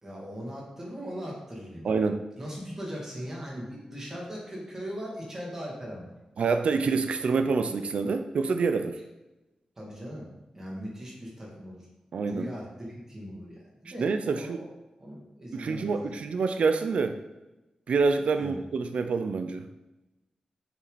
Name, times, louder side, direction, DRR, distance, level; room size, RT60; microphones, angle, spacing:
voice 1, 0.0-1.9 2.4-6.1 9.8-10.3 10.5-11.9 12.1-14.7 15.0-16.1 18.4-18.6, equal, 25° right, -3 dB, 2.4 m, -39 dB
voice 2, 1.8-2.2 6.4-8.9 12.1-12.5 14.0-14.6 15.5-17.2 17.9-19.7, right 4 dB, 75° right, 8 dB, 0.5 m, -27 dB
7.3 x 7.1 x 4.1 m, 1.0 s
wide cardioid pair, 170°, 2 cm